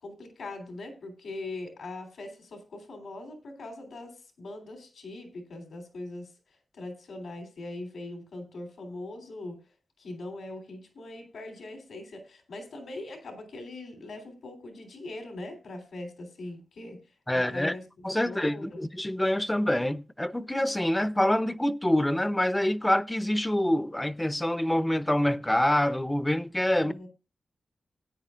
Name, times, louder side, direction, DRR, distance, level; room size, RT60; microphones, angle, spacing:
voice 1, 0.0-6.3 6.7-9.6 10.0-17.0 17.3-18.8 26.8-27.1, left 2 dB, 85° left, 3.3 m, -41 dB
voice 2, 17.3-17.7 18.0-27.1, left 1 dB, 15° left, 0.7 m, -26 dB
17.5 x 9.3 x 2.5 m
cardioid pair, 65°, 0 cm